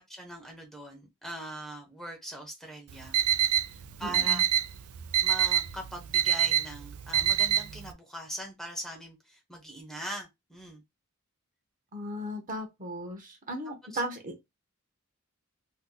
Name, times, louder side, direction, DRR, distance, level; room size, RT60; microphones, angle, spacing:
voice 1, 0.1-3.2 3.7-4.4 5.2-10.8 13.9-14.0, right 1 dB, ahead, 0.7 m, -41 dB
Alarm, 2.9-7.9, right 10 dB, 80° right, 0.4 m, -26 dB
voice 2, 4.0-4.4 11.9-14.4, equal, 40° right, 0.8 m, -36 dB
2.7 x 2.2 x 3.7 m
head